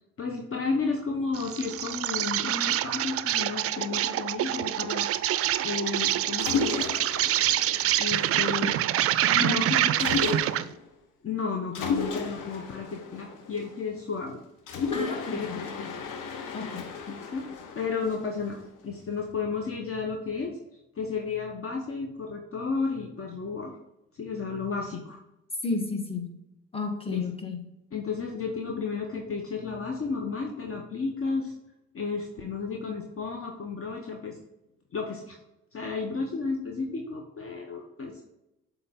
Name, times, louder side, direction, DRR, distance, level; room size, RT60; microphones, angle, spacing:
voice 1, 0.2-5.1 5.6-7.0 8.0-8.8 9.4-10.4 11.2-14.4 14.7-15.9 17.1-17.5 17.7-18.6 18.8-20.6 21.0-23.7 24.2-25.2 27.1-27.3 27.9-31.5 31.9-34.4 34.9-35.4 35.7-38.2, left 4 dB, 40° left, 2 dB, 1.0 m, -32 dB
Insect, 1.3-10.7, right 12 dB, 45° right, 0.4 m, -26 dB
Mechanisms, 6.4-8.8 10.0-10.9 11.7-14.1 14.7-18.8, left 5 dB, 65° left, 1.1 m, -34 dB
voice 2, 9.2-9.6 14.9-15.5 16.5-16.8 25.6-26.3 26.7-27.6, left 3 dB, 15° left, 3 dB, 1.5 m, -31 dB
7.6 x 3.6 x 3.7 m, 0.92 s
hypercardioid pair, 45°, 34 cm